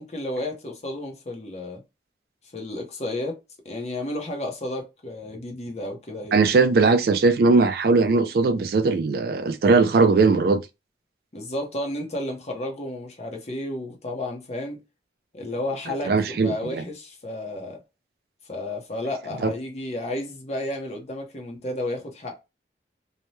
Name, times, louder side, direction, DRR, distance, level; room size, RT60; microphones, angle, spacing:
voice 1, 0.0-1.8 2.5-3.4 3.6-6.5 11.3-14.8 15.3-17.8 18.5-22.4, left 1 dB, 35° left, 0.7 m, -32 dB
voice 2, 6.3-10.6 16.0-16.8 19.4-19.5, right 3 dB, 55° right, 0.3 m, -19 dB
2.7 x 2.1 x 3.1 m
head